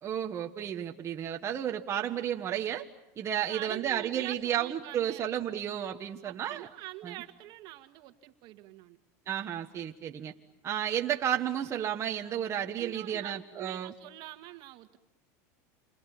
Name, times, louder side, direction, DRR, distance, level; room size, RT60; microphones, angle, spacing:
voice 1, 0.0-2.8 3.2-6.7 7.0-7.1 9.3-10.3 10.6-13.9, right 10 dB, 30° right, 3 dB, 1.5 m, -32 dB
voice 2, 3.4-5.3 6.2-9.0 12.7-15.0, right 18 dB, 55° right, 8 dB, 1.9 m, -45 dB
29.0 x 26.5 x 7.2 m, 0.89 s
supercardioid pair, 130°, 9 cm